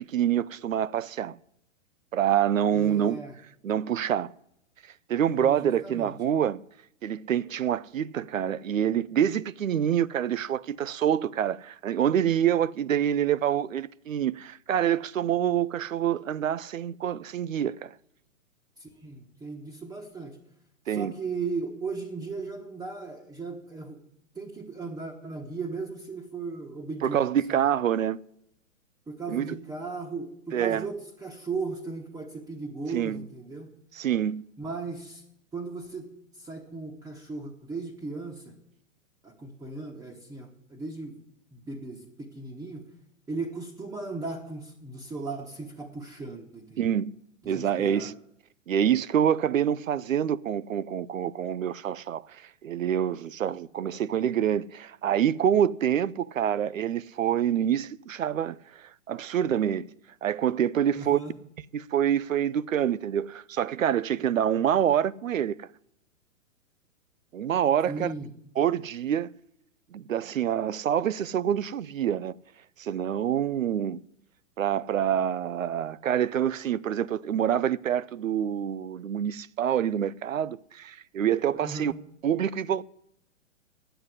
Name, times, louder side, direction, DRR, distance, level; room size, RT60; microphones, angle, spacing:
voice 1, 0.0-1.4 2.1-3.2 3.6-4.3 5.1-6.6 7.0-17.9 20.9-21.1 27.0-28.2 29.3-29.6 30.5-30.9 32.9-33.2 33.9-34.4 46.8-47.1 47.5-48.1 48.7-59.9 60.2-61.2 61.7-65.7 67.3-68.1 68.6-69.3 69.9-72.3 72.8-74.0 74.6-81.9 82.2-82.8, right 9 dB, 80° right, 0.5 m, -26 dB
voice 2, 2.7-3.4 5.3-6.1 18.8-20.4 20.9-24.0 24.3-27.6 29.1-33.7 34.6-35.2 35.5-36.1 36.4-38.6 39.2-41.2 41.5-42.8 43.3-47.0 47.4-48.1 60.9-61.3 67.9-68.3 81.6-82.0, right 4 dB, 10° right, 1.0 m, -37 dB
9.8 x 7.9 x 9.5 m
figure-of-eight pair, 120°, 39 cm